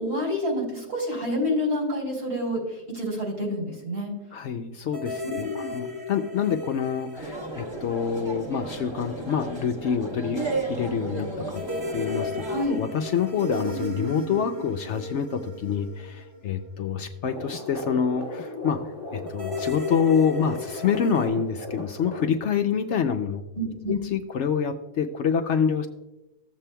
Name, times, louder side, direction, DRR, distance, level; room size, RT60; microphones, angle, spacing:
voice 1, 0.0-4.1 5.2-5.7 12.5-12.8 23.5-24.0, left 1 dB, 80° right, -1 dB, 3.8 m, -28 dB
voice 2, 4.3-11.6 11.9-18.8 19.1-23.4 23.9-25.9, left 7 dB, 70° left, 6 dB, 0.7 m, -27 dB
sound 1, 4.9-8.7 8.9-9.0 11.5-16.9 19.3-21.3, left 2 dB, 45° right, 1.2 m, -35 dB
sound 2, 7.1-12.6, right 3 dB, 20° right, 1.0 m, -33 dB
sound 3, 17.2-22.3, left 2 dB, 35° left, 1.6 m, -36 dB
15.5 x 7.4 x 2.2 m, 0.99 s
omnidirectional pair, 1.7 m